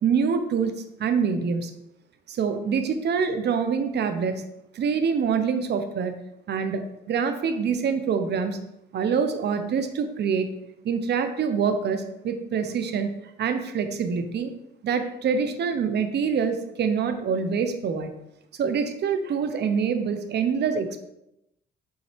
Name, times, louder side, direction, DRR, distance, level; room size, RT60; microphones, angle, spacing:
voice 1, 0.0-1.7 2.3-4.4 4.7-6.1 6.5-8.6 8.9-10.5 10.8-14.5 14.8-18.1 18.6-21.0, right 6 dB, 60° right, 8 dB, 0.8 m, -25 dB
7.1 x 4.2 x 3.3 m, 0.85 s
cardioid pair, 90°, 20 cm